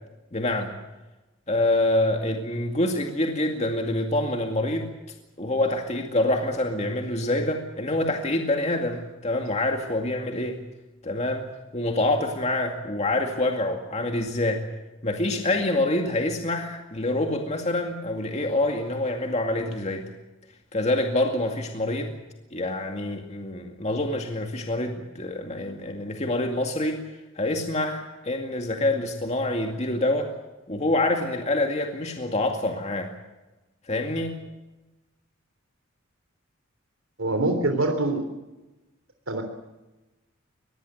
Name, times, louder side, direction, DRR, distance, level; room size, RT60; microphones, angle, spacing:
voice 1, 0.3-0.8 1.5-4.9 5.4-10.6 11.0-11.5 11.7-14.6 15.0-20.1 20.7-22.1 22.5-27.0 27.4-30.3 30.7-33.1 33.9-34.4, left 1 dB, 35° left, 3 dB, 2.2 m, -26 dB
voice 2, 37.2-38.2 39.3-39.4, right 2 dB, 80° right, 5 dB, 3.4 m, -24 dB
24.0 x 19.5 x 8.0 m, 1.1 s
head